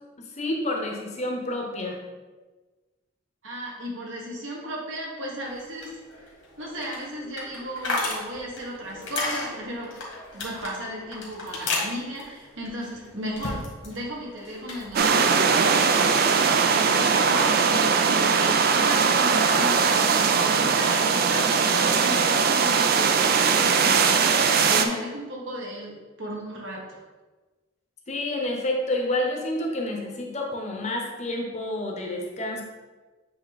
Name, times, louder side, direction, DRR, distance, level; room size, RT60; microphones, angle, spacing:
voice 1, 0.2-2.0 28.1-32.6, left 1 dB, 35° left, 1 dB, 0.9 m, -29 dB
voice 2, 3.4-5.9 6.6-9.9 10.3-26.8, equal, 75° right, -3 dB, 1.6 m, -35 dB
sound 1, 5.4-14.0 14.3-15.1, left 2 dB, 75° left, 1.7 m, -34 dB
sound 2, 15.0-24.9, right 5 dB, 50° right, 0.4 m, -20 dB
8.0 x 3.0 x 4.0 m, 1.3 s
head